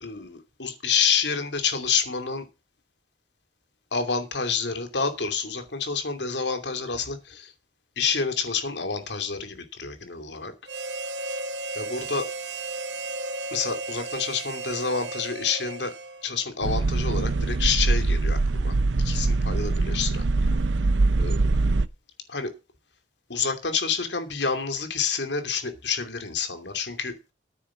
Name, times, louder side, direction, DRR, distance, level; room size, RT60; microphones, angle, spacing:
voice 1, 0.0-2.5 3.9-7.5 8.0-10.5 11.7-12.3 13.5-15.9 16.2-18.7 19.0-20.6 21.2-21.4 22.3-22.5 23.3-27.1, left 5 dB, 70° left, 7 dB, 2.7 m, -28 dB
Harmonica, 10.7-16.5, right 2 dB, 65° right, 1.2 m, -34 dB
sound 1, 16.6-21.9, right 3 dB, 85° right, 0.7 m, -23 dB
9.5 x 7.8 x 7.4 m, 0.28 s
head